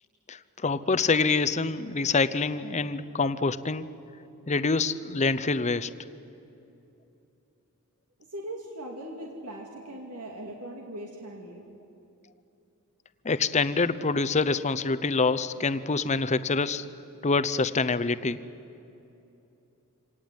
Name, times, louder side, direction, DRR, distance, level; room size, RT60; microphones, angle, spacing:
voice 1, 0.3-3.9 4.5-5.9 13.2-16.8 17.2-18.4, left 4 dB, 30° left, 14 dB, 0.7 m, -26 dB
voice 2, 8.3-11.6, right 1 dB, 90° right, 1 dB, 2.6 m, -40 dB
25.5 x 18.5 x 9.4 m, 2.8 s
head